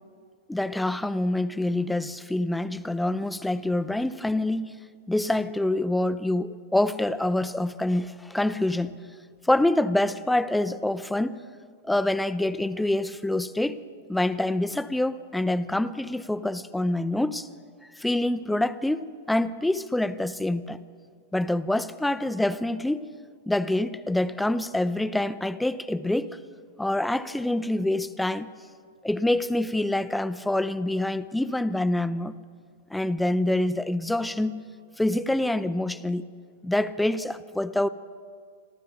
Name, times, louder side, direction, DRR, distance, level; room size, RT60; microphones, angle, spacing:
voice 1, 0.5-4.7 5.1-9.0 9.4-11.4 11.8-13.8 14.1-17.5 18.0-20.8 21.3-23.1 23.5-26.4 26.8-28.5 29.0-32.3 32.9-34.6 35.0-36.2 36.6-37.9, left 1 dB, 5° left, 14 dB, 0.6 m, -26 dB
26.5 x 14.0 x 3.9 m, 2.1 s
hypercardioid pair, 115°, 0 cm